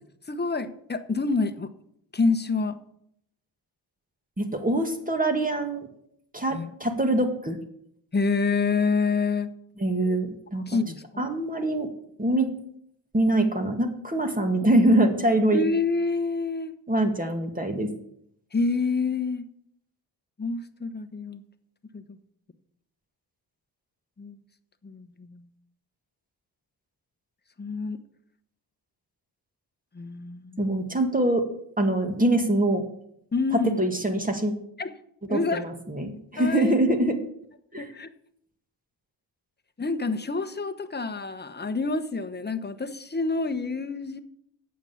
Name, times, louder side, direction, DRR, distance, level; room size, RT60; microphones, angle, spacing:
voice 1, 0.3-1.7 2.1-2.8 6.5-6.7 8.1-9.5 10.7-11.3 15.5-16.8 18.5-19.4 20.4-21.4 21.9-22.0 24.2-24.4 24.8-25.4 27.6-28.0 29.9-30.6 33.3-33.8 34.8-34.9 35.3-35.6 36.4-36.7 37.8-38.1 39.8-44.2, left 4 dB, 25° left, 9 dB, 1.1 m, -27 dB
voice 2, 4.4-5.9 6.3-7.6 9.8-10.8 11.2-11.9 12.2-12.5 13.1-15.6 16.9-17.9 30.6-31.4 31.8-32.8 33.8-34.5 35.3-37.2 37.7-37.9, right 1 dB, 20° right, 5 dB, 2.0 m, -24 dB
8.9 x 7.4 x 7.1 m, 0.72 s
cardioid pair, 60°, 43 cm